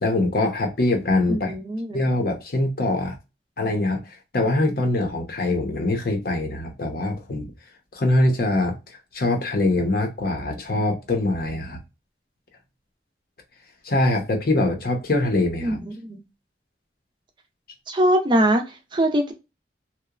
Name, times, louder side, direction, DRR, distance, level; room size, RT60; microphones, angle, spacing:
voice 1, 0.0-1.5 1.9-3.2 3.6-7.5 7.9-8.8 9.1-11.8 13.8-15.8, left 2 dB, 55° left, 0.7 m, -23 dB
voice 2, 1.3-2.0 15.6-16.2 17.9-19.3, right 1 dB, 25° right, 0.5 m, -22 dB
2.8 x 2.1 x 2.3 m
head